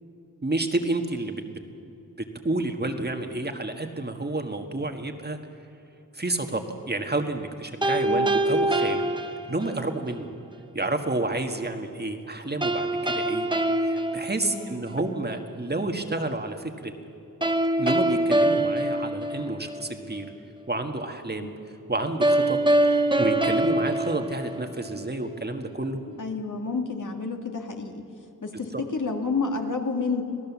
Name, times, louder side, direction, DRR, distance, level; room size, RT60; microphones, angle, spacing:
voice 1, 0.4-1.6 2.4-5.4 6.1-9.1 9.5-10.3 10.7-13.5 13.8-16.9 17.8-20.3 20.7-21.5 21.9-22.6 22.9-26.0 28.7-28.8, right 2 dB, 30° right, 5 dB, 1.6 m, -30 dB
sound 1, 7.8-10.0 12.6-15.0 17.4-19.9 22.2-25.0, right 1 dB, 15° right, 1.1 m, -24 dB
voice 2, 14.5-14.8 21.4-21.5 26.1-28.0 28.4-30.2, left 4 dB, 60° left, 3 dB, 2.3 m, -30 dB
26.5 x 18.0 x 7.2 m, 2.9 s
wide cardioid pair, 110°, 35 cm